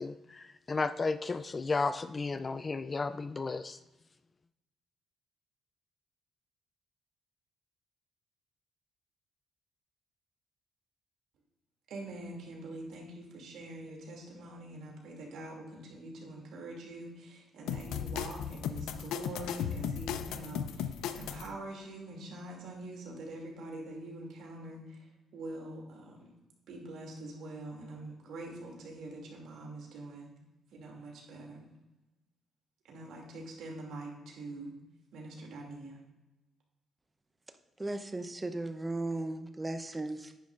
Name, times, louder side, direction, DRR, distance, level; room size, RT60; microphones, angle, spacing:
voice 1, 0.0-3.8, left 3 dB, 30° left, 11 dB, 0.3 m, -33 dB
voice 2, 11.9-25.1 25.3-26.3 26.7-30.3 30.7-31.7 32.9-34.7 35.1-36.0, right 2 dB, 80° right, 0 dB, 2.6 m, -44 dB
sound 1, 17.7-21.5, left 9 dB, 90° left, 0.5 m, -36 dB
voice 3, 37.8-40.3, right 2 dB, 20° right, 8 dB, 0.8 m, -36 dB
10.5 x 9.6 x 2.5 m, 1.0 s
cardioid pair, 90°, 0 cm